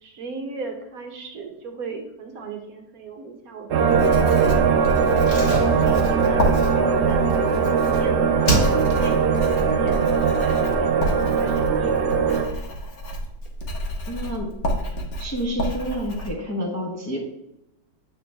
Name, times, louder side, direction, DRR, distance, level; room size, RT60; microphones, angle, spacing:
voice 1, 0.0-5.0 5.7-6.6 7.1-9.4 9.6-10.0 10.3-12.1, right 4 dB, 60° right, 4 dB, 1.2 m, -37 dB
sound 1, 3.7-12.5, right 6 dB, 80° right, 0.5 m, -20 dB
Writing, 3.9-16.3, equal, 80° left, 1.8 m, -30 dB
Slam, 5.2-8.0 8.4-9.2 9.5-9.6, right 1 dB, 45° left, 2.2 m, -28 dB
voice 2, 14.1-14.5 15.2-17.2, equal, 15° left, -2 dB, 0.7 m, -29 dB
9.0 x 3.9 x 3.5 m, 0.88 s
omnidirectional pair, 1.9 m